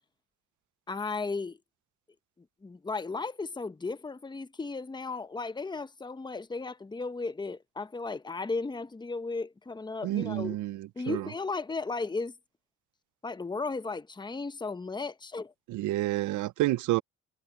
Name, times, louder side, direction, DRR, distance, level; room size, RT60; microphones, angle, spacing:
voice 1, 0.9-1.6 2.6-10.6 11.0-12.3 13.2-15.5, left 3 dB, 15° left, 0.9 m, -35 dB
voice 2, 10.0-11.2 15.7-17.0, right 16 dB, 80° right, 0.7 m, -29 dB
cardioid pair, 90°, 30 cm